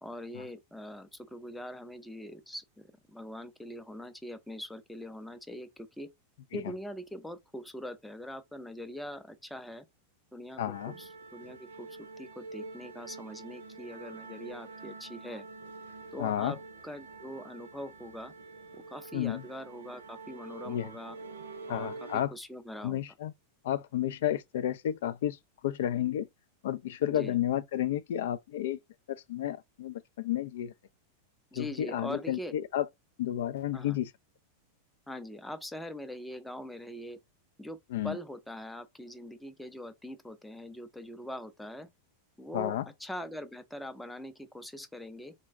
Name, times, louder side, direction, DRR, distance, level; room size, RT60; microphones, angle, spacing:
voice 1, 0.0-6.1 6.5-9.9 10.3-15.4 16.1-18.3 18.7-21.2 21.7-23.0 27.1-27.4 31.5-32.5 33.7-34.0 35.1-37.2 37.6-37.8 38.0-41.9 42.4-45.3, equal, 5° left, 0.5 m, -42 dB
voice 2, 10.6-11.0 16.2-16.6 19.1-19.4 20.6-20.9 21.7-22.3 22.8-23.3 23.6-26.3 26.6-28.8 29.1-30.7 31.5-32.9 33.2-34.1 37.9-38.2 42.5-42.9, left 11 dB, 55° left, 0.3 m, -31 dB
sound 1, 10.7-22.2, right 3 dB, 65° right, 0.5 m, -46 dB
3.8 x 2.2 x 3.5 m
figure-of-eight pair, 90°, 0 cm